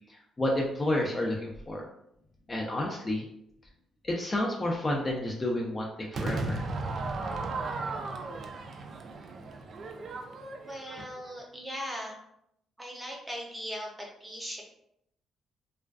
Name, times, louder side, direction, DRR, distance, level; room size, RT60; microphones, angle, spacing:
voice 1, 0.4-1.8 2.5-3.2 4.0-6.6, left 1 dB, 25° left, -1 dB, 0.4 m, -30 dB
Crowd / Fireworks, 6.1-11.4, right 3 dB, 55° right, 0.3 m, -35 dB
voice 2, 10.6-12.3 12.8-14.6, equal, 10° right, -1 dB, 0.7 m, -39 dB
2.4 x 2.2 x 2.3 m, 0.75 s
cardioid pair, 90°, 0 cm